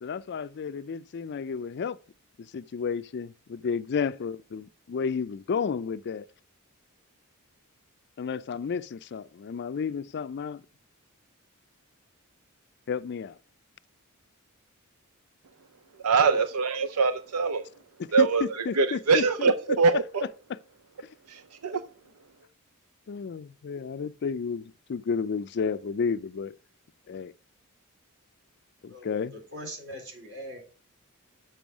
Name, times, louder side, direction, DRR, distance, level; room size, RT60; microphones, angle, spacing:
voice 1, 0.0-2.0 2.4-6.3 8.2-10.6 12.9-13.4 18.0-19.5 21.0-21.1 23.1-26.6 27.1-27.3 28.8-29.3, left 6 dB, 50° left, 0.4 m, -32 dB
voice 2, 16.0-17.7 18.1-18.4 18.7-20.3 21.3-21.8, right 4 dB, 90° right, 0.6 m, -23 dB
voice 3, 28.9-30.6, left 1 dB, 55° right, 3.5 m, -41 dB
7.0 x 5.5 x 6.1 m
head